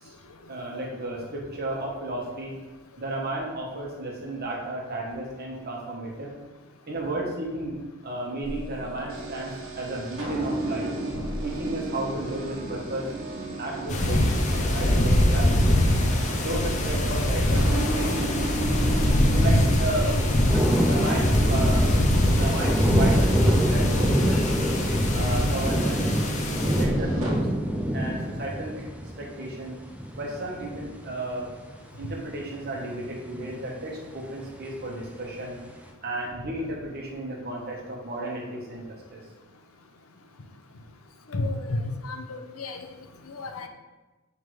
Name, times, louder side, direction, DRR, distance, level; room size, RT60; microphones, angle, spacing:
voice 1, 0.5-2.5 3.0-6.3 6.9-10.9 11.4-13.0 13.6-15.8 16.4-18.1 19.3-21.9 22.3-24.6 25.1-26.1 26.6-27.5 27.9-28.9 29.2-29.8 30.2-31.5 32.0-35.6 36.0-39.2, right 1 dB, 50° right, -2 dB, 1.3 m, -33 dB
sound 1, 8.4-27.3, right 1 dB, 65° right, 1.3 m, -34 dB
sound 2, 13.9-26.8, left 1 dB, 35° left, 0.7 m, -23 dB
sound 3, 17.6-34.3 34.6-35.2, equal, 5° right, 0.5 m, -27 dB
voice 2, 41.3-42.9 43.3-43.7, left 2 dB, 90° left, 5 dB, 0.7 m, -32 dB
6.0 x 3.6 x 4.7 m, 1.2 s
head